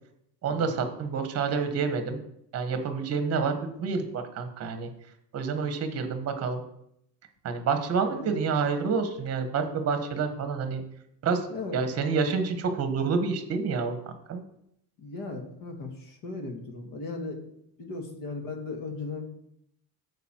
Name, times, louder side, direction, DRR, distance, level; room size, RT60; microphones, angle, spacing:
voice 1, 0.4-2.2 2.5-4.9 5.3-6.6 7.4-10.8 11.2-11.5 11.7-14.4, right 5 dB, 40° right, 7 dB, 1.2 m, -28 dB
voice 2, 11.5-11.8 15.0-19.3, left 3 dB, 55° left, 3 dB, 1.9 m, -37 dB
9.2 x 6.5 x 4.4 m, 0.75 s
cardioid pair, 175°, 40 cm